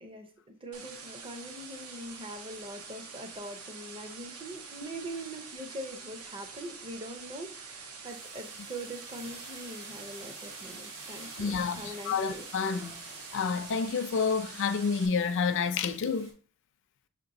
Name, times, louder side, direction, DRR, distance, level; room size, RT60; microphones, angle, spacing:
voice 1, 0.0-12.5, right 1 dB, 25° right, 0.5 m, -43 dB
sound 1, 0.7-15.1, right 5 dB, 80° right, 0.7 m, -46 dB
sound 2, 6.5-6.9 7.3-16.3, right 2 dB, 60° right, 1.6 m, -50 dB
voice 2, 11.4-13.0 13.3-16.3, left 5 dB, 60° left, 0.4 m, -29 dB
6.0 x 2.9 x 2.6 m
head